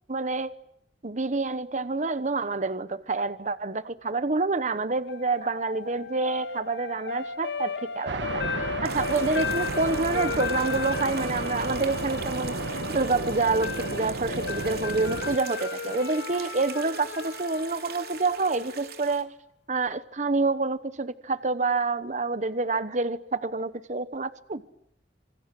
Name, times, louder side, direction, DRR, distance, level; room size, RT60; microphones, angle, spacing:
voice 1, 0.1-0.5 1.0-19.3 19.7-24.6, right 3 dB, 45° right, 1.0 m, -28 dB
sound 1, 5.1-19.2, left 5 dB, 70° left, 1.0 m, -35 dB
sound 2, 8.1-15.4, right 3 dB, 90° right, 1.2 m, -33 dB
sound 3, 8.8-19.2, right 8 dB, 60° right, 3.1 m, -42 dB
26.5 x 26.5 x 7.7 m
head